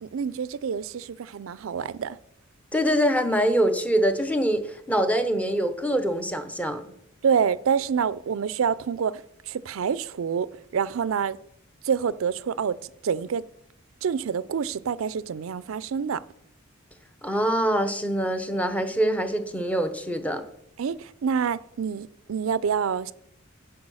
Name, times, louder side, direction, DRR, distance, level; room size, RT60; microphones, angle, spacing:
voice 1, 0.0-2.2 7.2-11.4 11.8-12.8 13.0-13.4 14.0-16.2 20.8-23.1, right 7 dB, 75° right, 0.4 m, -27 dB
voice 2, 2.7-6.8 17.2-20.4, equal, 5° left, 0.8 m, -24 dB
10.5 x 4.6 x 6.2 m
head